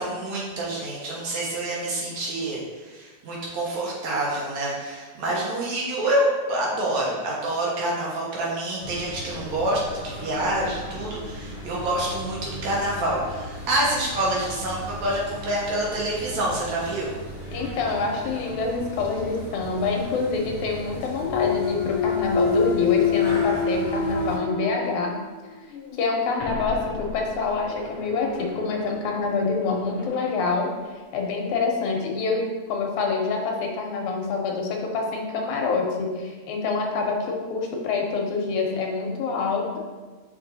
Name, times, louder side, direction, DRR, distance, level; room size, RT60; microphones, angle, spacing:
voice 1, 0.0-17.1, right 1 dB, 70° right, -4 dB, 2.5 m, -27 dB
sound 1, 8.8-24.4, equal, 35° right, 0.8 m, -37 dB
voice 2, 17.5-25.2 26.0-30.7 31.1-39.8, left 4 dB, 85° left, 1 dB, 2.3 m, -26 dB
Thump thud, 21.2-25.3 25.7-30.4, left 5 dB, 60° left, 1.8 m, -27 dB
6.8 x 5.5 x 2.7 m, 1.3 s
omnidirectional pair, 3.4 m